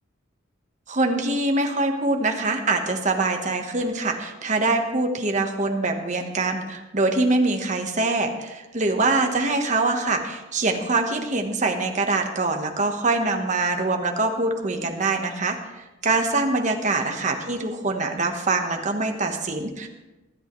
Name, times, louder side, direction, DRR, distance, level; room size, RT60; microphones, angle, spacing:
voice 1, 0.9-19.9, right 3 dB, 35° right, 4 dB, 1.2 m, -24 dB
23.5 x 8.3 x 3.2 m, 1.1 s
head